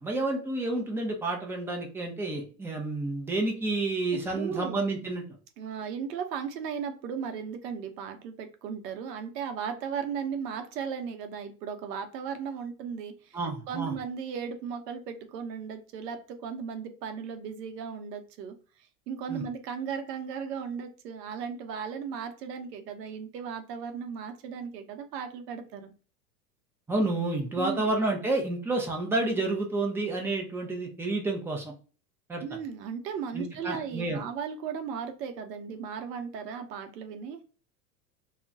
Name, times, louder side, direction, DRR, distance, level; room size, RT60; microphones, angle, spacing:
voice 1, 0.0-5.2 13.3-13.9 19.3-19.4 26.9-31.7 32.3-32.4 33.3-34.2, right 2 dB, 5° right, 0 dB, 0.4 m, -30 dB
voice 2, 4.1-4.8 5.6-18.5 19.1-25.9 27.6-27.9 32.4-37.4, right 7 dB, 75° right, 7 dB, 0.8 m, -36 dB
2.3 x 2.2 x 3.7 m, 0.38 s
hypercardioid pair, 105°, 49 cm